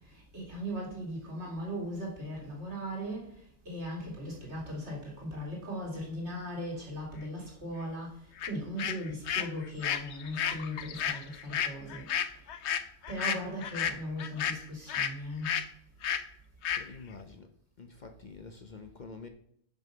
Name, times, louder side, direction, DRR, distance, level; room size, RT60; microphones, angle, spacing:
voice 1, 0.3-3.3 3.7-8.2 8.4-12.1 13.1-15.5, equal, 90° right, 2.9 m, -38 dB
sound 1, 8.4-8.5 8.8-15.1 15.4-15.7 16.0-16.2 16.6-16.8, left 9 dB, 80° left, 0.9 m, -32 dB
voice 2, 16.7-17.5 17.8-19.3, left 4 dB, 45° left, 0.8 m, -47 dB
5.9 x 5.5 x 6.7 m
omnidirectional pair, 1.1 m